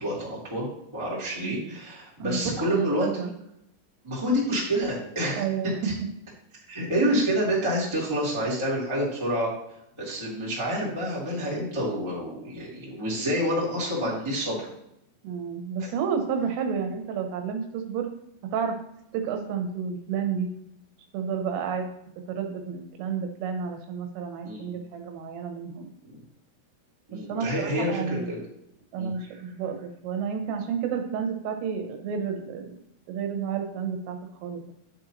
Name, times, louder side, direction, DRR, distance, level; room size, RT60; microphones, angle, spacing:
voice 1, 0.0-3.3 4.0-5.4 5.8-5.9 6.7-9.5 10.0-14.6 15.8-15.9 24.4-24.7 27.1-28.4 29.0-29.1, equal, 5° right, -7 dB, 2.4 m, -28 dB
voice 2, 2.2-3.3 5.4-5.9 15.2-18.1 18.4-18.8 19.1-20.5 21.1-21.9 22.3-25.9 27.1-28.3 28.9-32.8 33.1-34.7, right 6 dB, 80° right, 5 dB, 3.4 m, -31 dB
10.5 x 7.7 x 3.1 m, 0.79 s
omnidirectional pair, 5.9 m